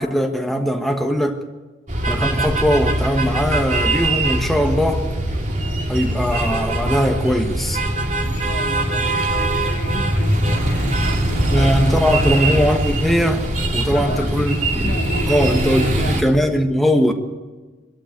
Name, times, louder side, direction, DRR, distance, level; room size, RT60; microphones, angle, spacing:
voice 1, 0.0-1.4 2.1-5.1 5.9-7.8 11.5-14.9 15.3-17.1, equal, ahead, 1.4 m, -20 dB
sound 1, 1.9-16.2, right 1 dB, 40° right, 2.9 m, -21 dB
voice 2, 8.2-12.5 13.9-14.5 14.8-16.3, left 2 dB, 50° left, 1.6 m, -33 dB
22.5 x 13.5 x 9.4 m
head